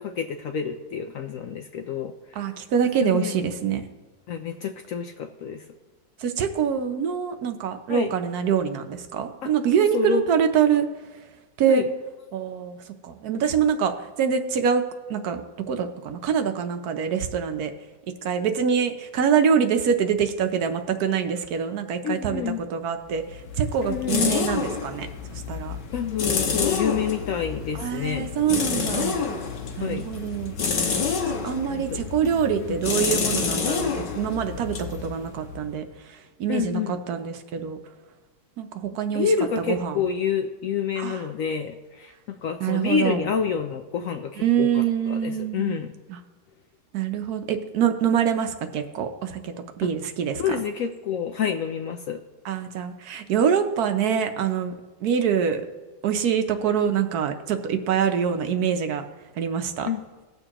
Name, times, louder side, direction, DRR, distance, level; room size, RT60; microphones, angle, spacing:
voice 1, 0.0-2.1 3.0-3.3 4.3-5.6 7.9-8.1 9.4-10.2 11.7-11.8 22.0-22.6 23.8-24.4 25.9-28.3 29.8-30.1 31.7-32.0 36.5-37.0 39.0-45.9 49.8-49.9 50.4-52.2 59.9-60.0, left 7 dB, 70° left, 6 dB, 0.8 m, -28 dB
voice 2, 2.4-3.8 6.2-10.9 11.6-11.8 12.3-12.8 13.0-14.8 15.1-15.4 15.7-17.7 18.2-25.1 25.3-25.8 27.7-29.2 29.8-30.6 31.2-37.8 38.6-39.3 39.7-40.0 41.0-41.2 42.6-43.2 44.4-45.8 46.1-46.2 46.9-50.5 52.4-54.7 55.0-55.6 56.0-59.0 59.4-59.9, right 7 dB, 70° right, 7 dB, 1.2 m, -25 dB
sound 1, 23.1-35.8, left 5 dB, 85° left, 1.6 m, -28 dB
19.0 x 6.8 x 2.9 m, 1.3 s
omnidirectional pair, 1.8 m